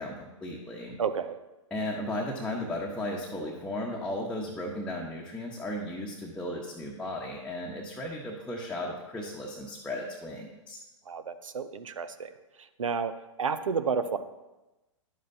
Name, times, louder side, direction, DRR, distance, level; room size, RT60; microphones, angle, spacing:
voice 1, 0.0-1.0 1.7-10.8, left 1 dB, 5° left, -3 dB, 1.0 m, -35 dB
voice 2, 1.0-1.4 11.1-12.3 12.8-13.1 13.4-14.2, right 6 dB, 85° right, 11 dB, 0.7 m, -30 dB
10.5 x 7.5 x 2.7 m, 1.0 s
hypercardioid pair, 120°, 16 cm